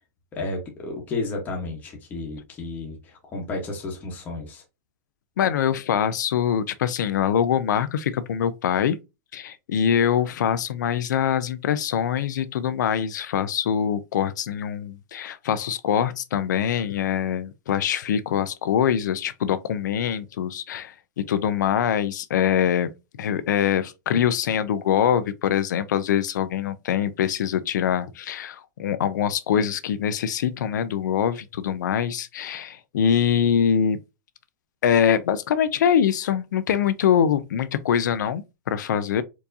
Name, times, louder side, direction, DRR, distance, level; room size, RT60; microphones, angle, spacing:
voice 1, 0.3-4.6, left 2 dB, 15° left, 1.0 m, -32 dB
voice 2, 5.4-9.0 9.3-22.9 23.2-34.0 34.8-39.2, left 8 dB, 85° left, 0.4 m, -24 dB
4.5 x 2.7 x 2.6 m
supercardioid pair, 165°, 10 cm